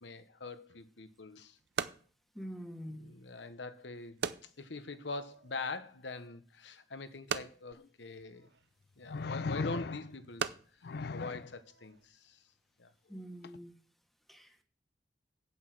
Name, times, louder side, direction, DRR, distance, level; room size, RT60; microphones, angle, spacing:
voice 1, 0.0-1.6 2.9-8.5 9.0-10.5 10.9-12.4 12.8-12.9, left 3 dB, 80° left, 1.1 m, -43 dB
sound 1, 0.7-12.1, right 6 dB, 70° right, 0.6 m, -44 dB
voice 2, 2.3-3.0 13.1-13.7 14.3-14.6, equal, ahead, 1.4 m, -45 dB
sound 2, 7.7-7.8 9.1-10.3 10.8-11.5 13.4-13.6, left 4 dB, 65° left, 0.4 m, -38 dB
8.7 x 8.4 x 6.1 m
head